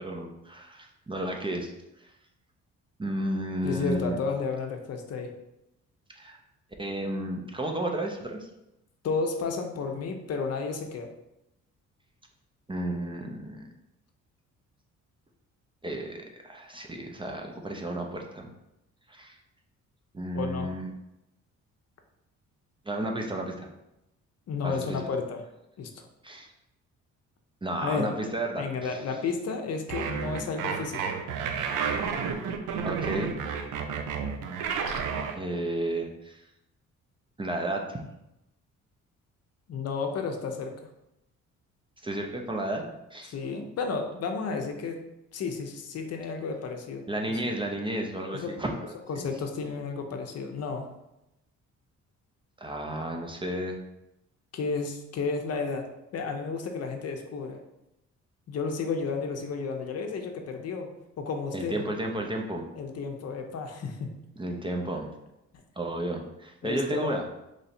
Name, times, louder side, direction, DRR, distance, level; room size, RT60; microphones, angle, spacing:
voice 1, 0.0-1.7 2.0-2.1 3.0-4.2 6.1-6.4 6.8-8.5 12.7-13.7 15.8-18.5 19.1-19.4 20.1-20.9 22.9-23.7 24.6-25.0 26.2-26.5 27.6-29.0 32.8-33.4 35.3-36.4 37.4-38.0 42.0-43.3 47.1-49.3 52.6-53.8 61.5-62.6 64.4-65.1 65.8-67.2, right 1 dB, 15° right, 2 dB, 0.5 m, -32 dB
voice 2, 3.6-5.3 9.0-11.1 20.3-20.7 24.5-25.4 25.8-26.0 27.8-31.0 39.7-40.7 43.3-45.0 45.3-47.4 48.3-48.5 49.1-50.9 54.5-55.9 56.1-57.6 58.5-60.9 61.2-61.8 62.8-64.1 66.6-67.2, left 4 dB, 55° left, 4 dB, 0.6 m, -32 dB
sound 1, 29.9-35.3, right 6 dB, 85° right, 0.5 m, -31 dB
3.1 x 2.7 x 4.2 m, 0.88 s
cardioid pair, 90°, 30 cm